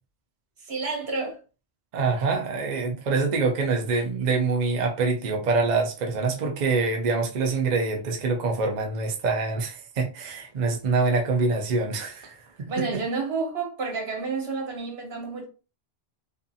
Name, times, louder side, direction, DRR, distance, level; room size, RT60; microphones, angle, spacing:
voice 1, 0.6-1.4 12.7-15.4, right 4 dB, 75° right, 1.2 m, -30 dB
voice 2, 1.9-13.0, right 4 dB, 50° right, 0.6 m, -25 dB
2.6 x 2.4 x 2.6 m
omnidirectional pair, 1.1 m